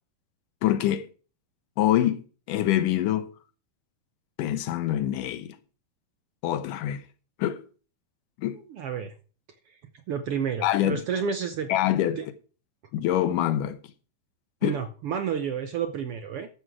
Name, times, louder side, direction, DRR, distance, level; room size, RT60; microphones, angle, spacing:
voice 1, 0.6-1.1 1.8-3.3 4.4-5.6 6.4-7.0 7.4-7.6 8.4-8.6 10.6-11.0 11.7-12.2 12.9-13.8 14.6-14.8, left 12 dB, 80° left, 2.5 m, -25 dB
voice 2, 8.7-9.1 10.1-11.7 12.1-12.3 14.6-16.5, right 7 dB, 75° right, 1.3 m, -30 dB
13.0 x 8.0 x 4.8 m
omnidirectional pair, 3.7 m